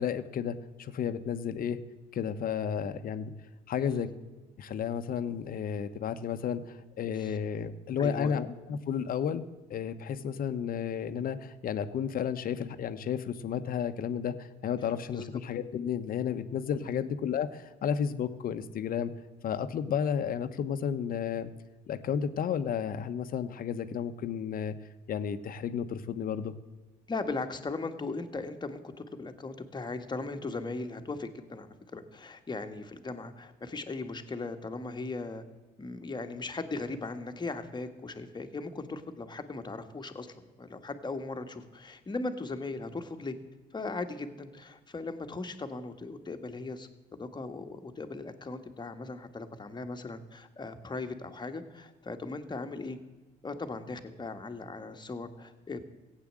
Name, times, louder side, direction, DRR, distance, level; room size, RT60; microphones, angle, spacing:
voice 1, 0.0-1.8 2.1-3.3 3.7-4.1 4.6-9.4 9.7-19.1 19.4-21.5 21.9-24.7 25.1-26.5, left 8 dB, 55° left, 10 dB, 1.1 m, -32 dB
voice 2, 3.8-4.1 7.1-7.4 8.0-8.4 15.1-15.3 16.8-17.1 27.1-35.4 35.8-43.3 43.7-46.9 47.2-53.0 53.4-55.8, left 3 dB, 25° left, 6 dB, 1.6 m, -38 dB
15.5 x 8.8 x 7.6 m, 1.3 s
supercardioid pair, 85°, 18 cm